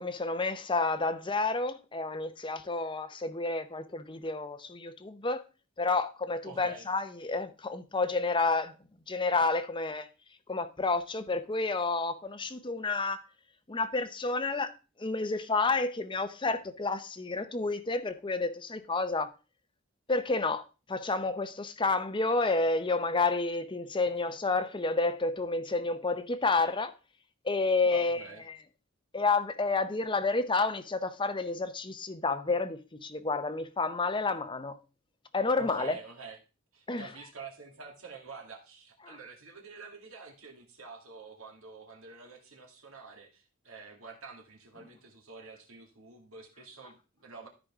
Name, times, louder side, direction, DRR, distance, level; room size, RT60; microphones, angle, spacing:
voice 1, 0.0-5.4 5.8-8.7 9.1-10.1 10.5-13.2 13.7-14.7 15.0-19.3 20.1-26.9 27.4-28.2 28.5-28.6 29.1-34.8 35.3-36.0 36.9-37.1 39.0-39.2, left 3 dB, 20° left, 0.7 m, -30 dB
voice 2, 6.4-6.9 27.8-28.4 35.6-36.4 36.7-47.5, right 4 dB, 70° right, 2.2 m, -47 dB
13.5 x 5.2 x 3.6 m
head